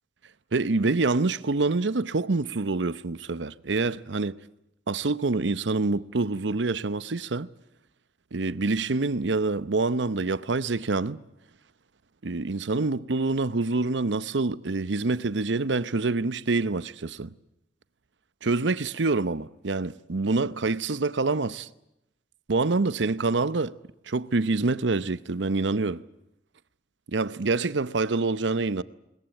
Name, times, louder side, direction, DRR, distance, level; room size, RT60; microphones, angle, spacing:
voice 1, 0.5-4.4 4.9-7.5 8.3-11.2 12.2-17.3 18.4-21.7 22.5-23.7 24.1-26.0 27.1-28.8, right 3 dB, 85° right, 0.8 m, -26 dB
21.5 x 20.5 x 9.0 m
head